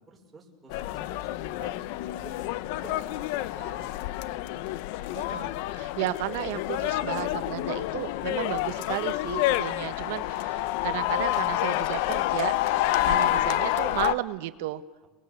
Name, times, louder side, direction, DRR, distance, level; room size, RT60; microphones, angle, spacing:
voice 1, 0.1-1.7 2.0-4.1 15.0-15.1, right 3 dB, 15° right, -1 dB, 5.6 m, -50 dB
sound 1, 0.7-14.1, left 14 dB, 70° left, 0.9 m, -28 dB
voice 2, 5.1-12.5 13.0-14.8, right 16 dB, 80° right, 12 dB, 1.4 m, -33 dB
30.0 x 21.0 x 8.3 m, 1.3 s
supercardioid pair, 150°, 0 cm